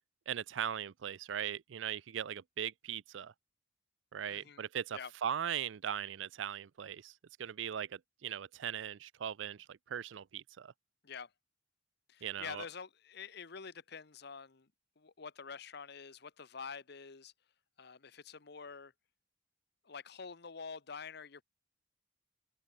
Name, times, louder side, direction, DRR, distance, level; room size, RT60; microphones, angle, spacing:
voice 1, 0.3-3.3 4.1-7.1 7.4-10.7 12.2-12.6, right 9 dB, 90° right, 0.5 m, -39 dB
voice 2, 4.3-4.6 4.9-5.1 11.0-11.3 12.1-14.7 15.0-17.3 17.8-18.9 19.8-21.4, left 5 dB, 60° left, 1.0 m, -47 dB
head